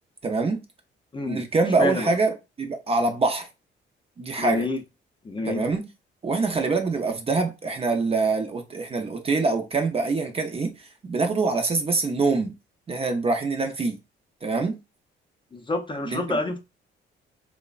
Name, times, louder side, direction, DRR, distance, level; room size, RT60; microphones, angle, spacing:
voice 1, 0.2-0.6 1.3-3.5 4.2-4.7 5.5-5.8 6.2-10.7 11.0-12.5 12.9-14.0 14.4-14.8 16.1-16.4, right 3 dB, 30° right, 0.5 m, -25 dB
voice 2, 1.1-1.4 1.8-2.2 4.4-4.8 5.2-5.7 15.5-16.6, left 2 dB, 25° left, 0.5 m, -28 dB
3.0 x 2.1 x 2.3 m
cardioid pair, 90°, 20 cm